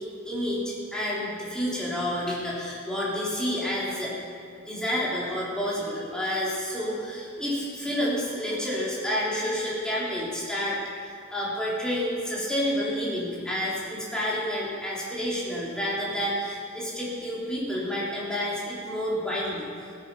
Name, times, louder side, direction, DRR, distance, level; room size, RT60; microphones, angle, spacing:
voice 1, 0.2-4.1 4.7-19.9, equal, 5° left, -7 dB, 3.5 m, -29 dB
16.0 x 9.6 x 5.6 m, 2.3 s
head